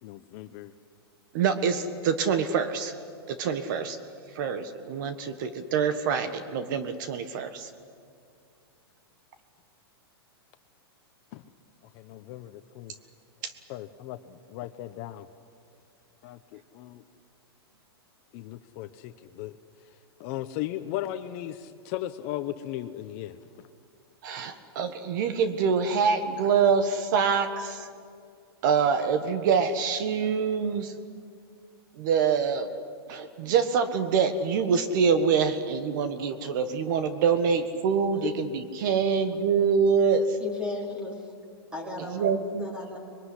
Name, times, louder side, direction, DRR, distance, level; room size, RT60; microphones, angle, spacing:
voice 1, 0.0-0.7 11.3-11.4 11.9-12.9 13.7-15.3 16.2-17.0 18.3-19.6 20.2-23.7, left 13 dB, 40° left, 10 dB, 0.9 m, -37 dB
voice 2, 1.3-2.9 3.3-4.0 4.3-7.7 13.4-13.5 24.2-27.9 28.6-30.9 32.0-32.7 33.1-40.4 42.0-42.8, right 6 dB, 50° right, 10 dB, 1.5 m, -25 dB
voice 3, 40.4-41.3 41.7-43.0, left 3 dB, 5° right, 0 dB, 4.4 m, -36 dB
25.5 x 22.5 x 9.9 m, 2.2 s
hypercardioid pair, 150°, 13 cm